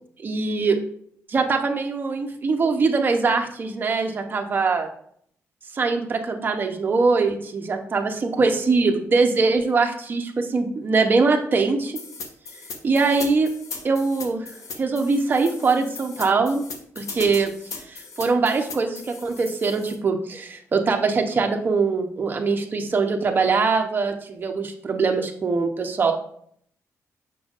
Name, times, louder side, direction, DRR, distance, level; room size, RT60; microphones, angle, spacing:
voice 1, 0.2-0.8 1.3-4.9 5.7-12.0 12.8-13.5 13.8-14.4 14.8-16.6 17.0-17.5 17.9-26.1, right 4 dB, 35° right, 4 dB, 0.8 m, -22 dB
sound 1, 11.9-19.9, left 4 dB, 70° left, 1.0 m, -38 dB
6.9 x 6.1 x 2.5 m, 0.65 s
wide cardioid pair, 140°, 6 cm